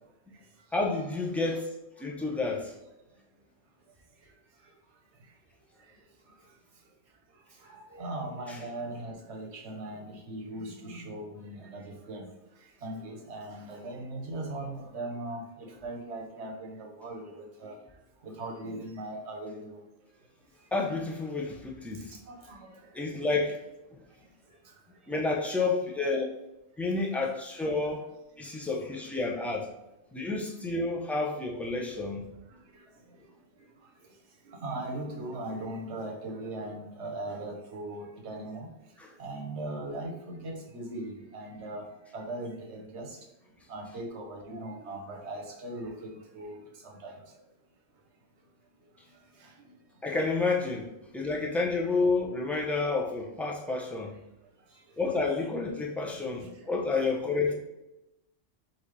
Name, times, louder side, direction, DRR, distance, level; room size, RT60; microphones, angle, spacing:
voice 1, 0.7-1.7 2.0-2.7 8.5-8.6 20.7-22.2 22.9-23.6 25.1-26.3 26.8-28.0 28.4-29.7 30.1-32.3 39.0-39.1 50.0-50.9 51.1-54.1 55.0-57.5, left 3 dB, ahead, -1 dB, 0.3 m, -30 dB
voice 2, 7.6-12.3 12.8-15.4 15.8-17.2 17.6-17.7 18.2-19.7 22.3-22.7 34.5-38.7 39.2-41.8 42.1-43.2 43.7-46.6 47.0-47.1 56.4-56.5, right 2 dB, 75° right, 0 dB, 1.2 m, -39 dB
5.5 x 2.7 x 3.2 m, 0.94 s
omnidirectional pair, 1.2 m